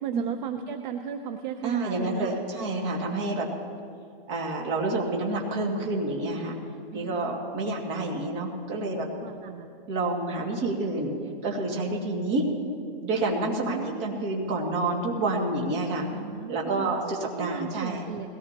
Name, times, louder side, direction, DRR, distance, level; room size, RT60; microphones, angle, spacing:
voice 1, 0.0-2.4 6.9-7.2 9.2-9.7 13.5-14.2 16.1-18.3, right 8 dB, 55° right, 6 dB, 0.8 m, -36 dB
voice 2, 1.6-3.5 4.3-6.6 6.9-9.1 9.9-11.1 11.4-12.4 13.0-16.1 16.5-18.0, right 2 dB, 35° right, -1 dB, 2.3 m, -28 dB
21.5 x 17.5 x 3.0 m, 2.5 s
hypercardioid pair, 165°, 29 cm